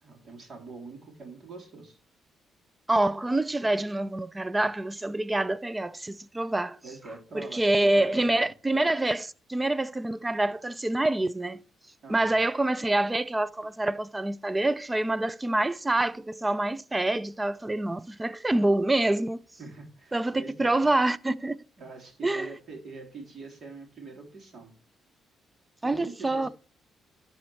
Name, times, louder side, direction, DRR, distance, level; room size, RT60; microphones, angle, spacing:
voice 1, 0.0-2.0 6.8-7.6 7.9-8.5 12.0-12.4 19.6-20.8 21.8-24.7 25.8-26.5, right 3 dB, 50° right, 3.3 m, -44 dB
voice 2, 2.9-6.8 7.3-11.6 12.1-19.4 20.1-21.6 22.2-22.5 25.8-26.5, right 2 dB, 15° right, 0.5 m, -26 dB
12.0 x 4.3 x 4.5 m
cardioid pair, 90°, 0 cm